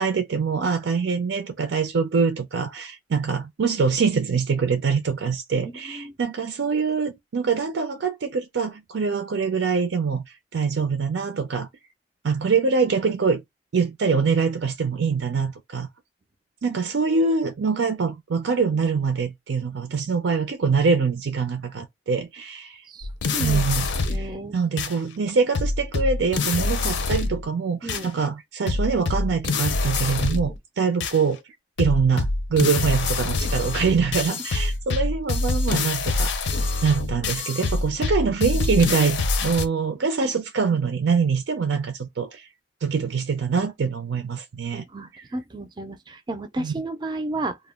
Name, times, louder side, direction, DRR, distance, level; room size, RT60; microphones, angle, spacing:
voice 1, 0.0-10.3 10.5-11.7 12.2-13.4 13.7-15.9 16.6-22.8 23.4-31.4 31.8-42.5 42.8-44.8 45.1-45.2 46.6-46.7, right 5 dB, 80° right, 0.5 m, -24 dB
voice 2, 5.5-6.2 22.9-23.6 24.1-24.6 27.8-28.1 30.5-30.6 37.4-37.7 44.7-47.6, right 2 dB, 25° right, 0.4 m, -33 dB
sound 1, 23.0-24.3 24.8-24.9 25.5-27.4 27.9-28.1 28.7-30.6 31.0-31.2 31.8-39.7, left 3 dB, 75° left, 0.5 m, -25 dB
2.2 x 2.0 x 3.4 m
head